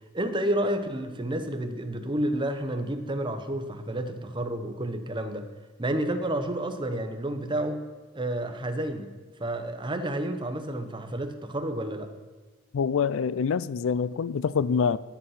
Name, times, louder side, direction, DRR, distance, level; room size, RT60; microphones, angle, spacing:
voice 1, 0.1-5.5 5.8-7.9 8.1-9.1 9.4-12.1, right 1 dB, 20° right, 0.8 m, -30 dB
voice 2, 12.7-15.0, left 6 dB, 65° left, 0.4 m, -25 dB
11.5 x 8.0 x 5.7 m
head